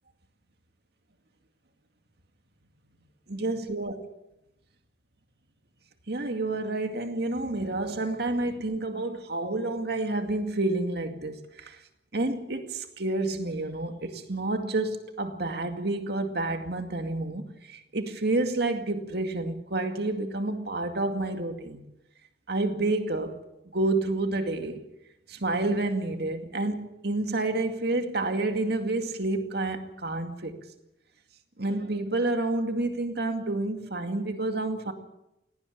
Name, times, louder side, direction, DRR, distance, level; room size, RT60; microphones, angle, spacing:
voice 1, 3.3-4.0 6.1-11.8 12.1-21.9 22.5-23.4 23.7-24.8 25.3-30.6 31.6-34.9, right 2 dB, 60° right, 2.3 m, -29 dB
18.0 x 17.5 x 8.7 m
head